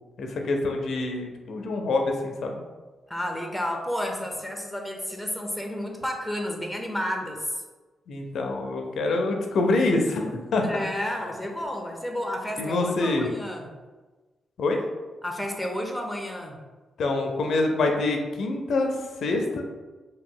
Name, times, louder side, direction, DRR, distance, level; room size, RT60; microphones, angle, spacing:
voice 1, 0.2-2.6 8.1-10.6 12.6-13.3 14.6-14.8 17.0-19.6, left 2 dB, 70° left, 3 dB, 0.4 m, -26 dB
voice 2, 3.1-7.6 10.6-13.7 15.2-16.6, left 1 dB, ahead, 2 dB, 0.5 m, -31 dB
2.9 x 2.2 x 3.7 m, 1.3 s
cardioid pair, 110°, 0 cm